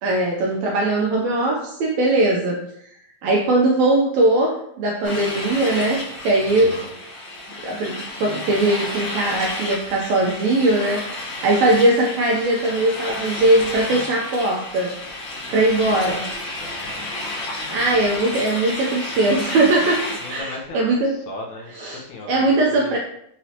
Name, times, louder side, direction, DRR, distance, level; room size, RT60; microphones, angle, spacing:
voice 1, 0.0-2.6 3.2-6.8 7.6-11.2 11.4-14.9 15.5-16.3 17.7-20.0 20.3-21.2 21.7-23.0, right 2 dB, 80° right, 0 dB, 1.6 m, -20 dB
sound 1, 5.0-20.4, left 2 dB, 55° left, 2.1 m, -31 dB
voice 2, 6.5-6.9 16.0-16.2 16.6-17.1 20.2-23.0, left 2 dB, 75° left, -1 dB, 1.9 m, -37 dB
5.6 x 3.0 x 2.8 m, 0.72 s
omnidirectional pair, 3.6 m